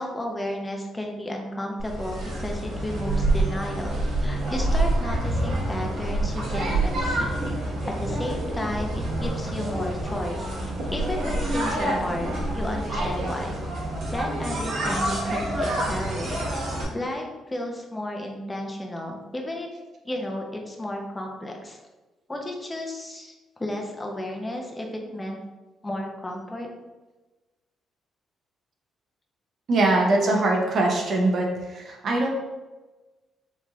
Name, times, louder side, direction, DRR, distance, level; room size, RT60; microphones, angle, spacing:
voice 1, 0.0-7.4 7.9-13.6 14.1-16.5 16.9-19.7 20.0-21.8 22.3-23.3 23.6-24.9 25.1-25.4 25.8-26.7, left 1 dB, 15° left, 1 dB, 0.7 m, -33 dB
sound 1, 1.8-16.8, right 1 dB, 85° right, 1.3 m, -27 dB
voice 2, 29.7-32.3, right 2 dB, 60° right, 0 dB, 0.8 m, -22 dB
4.0 x 3.0 x 2.4 m, 1.2 s
cardioid pair, 90°, 0 cm